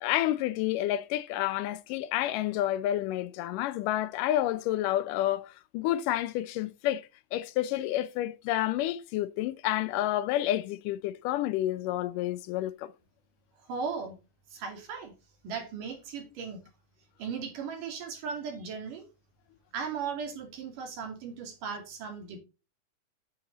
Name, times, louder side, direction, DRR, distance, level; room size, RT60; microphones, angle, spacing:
voice 1, 0.0-12.9, left 13 dB, 90° left, 2.3 m, -29 dB
voice 2, 13.7-14.2 14.5-15.1 15.4-16.7 17.2-19.0 19.7-22.4, right 6 dB, 80° right, 4.2 m, -37 dB
8.9 x 7.7 x 4.0 m
omnidirectional pair, 3.7 m